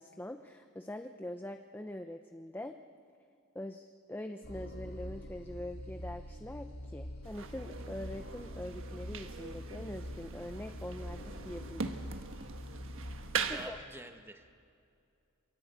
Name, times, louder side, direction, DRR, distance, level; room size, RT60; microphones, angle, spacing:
voice 1, 0.0-2.8 3.5-12.0 13.5-13.8, left 1 dB, 10° left, 6 dB, 0.7 m, -43 dB
sound 1, 4.4-13.6, equal, 75° left, 3.6 m, -45 dB
sound 2, 7.2-13.7, right 5 dB, 65° right, 1.4 m, -41 dB
voice 2, 13.4-14.5, right 1 dB, 10° right, 6 dB, 1.4 m, -48 dB
27.5 x 22.5 x 8.2 m, 2.4 s
head